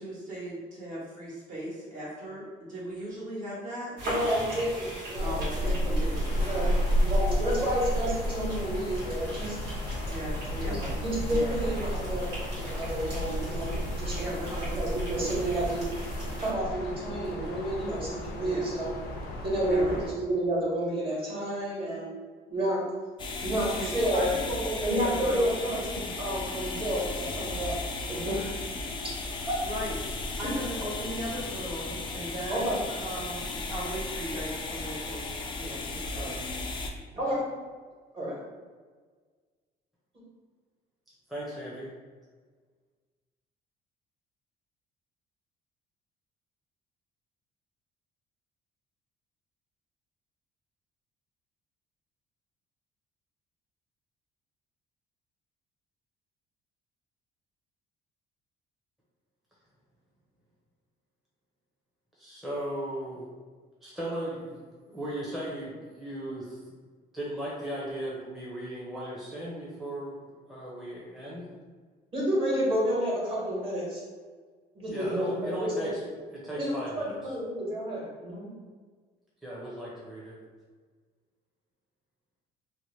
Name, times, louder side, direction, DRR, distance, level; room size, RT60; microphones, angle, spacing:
voice 1, 0.0-3.9 5.2-7.0 10.1-10.9 11.3-11.6 14.2-14.7 18.4-18.7 19.6-20.1 23.6-25.6 29.6-36.4 37.3-37.4, right 1 dB, 50° right, -7 dB, 1.4 m, -37 dB
voice 2, 4.0-5.9 6.3-6.7 7.0-9.6 10.6-14.1 14.5-15.9 16.4-18.9 19.4-22.1 22.5-22.8 23.4-24.3 24.8-27.7 28.1-28.3 29.5-29.6 32.5-32.8 37.2-37.4 38.1-38.4 72.1-74.0 74.7-75.9 76.5-78.5, right 1 dB, 35° right, -6 dB, 1.4 m, -30 dB
sound 1, 4.0-16.5, right 1 dB, 80° right, 1.3 m, -41 dB
sound 2, 5.2-20.1, equal, 75° left, 0.5 m, -32 dB
sound 3, 23.2-36.9, left 3 dB, 30° left, 0.4 m, -35 dB
voice 3, 41.3-41.9 62.2-63.3 63.8-66.6 67.1-71.5 74.8-76.0 76.3-77.3 79.4-80.4, right 1 dB, ahead, -7 dB, 0.7 m, -37 dB
2.7 x 2.1 x 3.2 m, 1.5 s
cardioid pair, 110°, 17 cm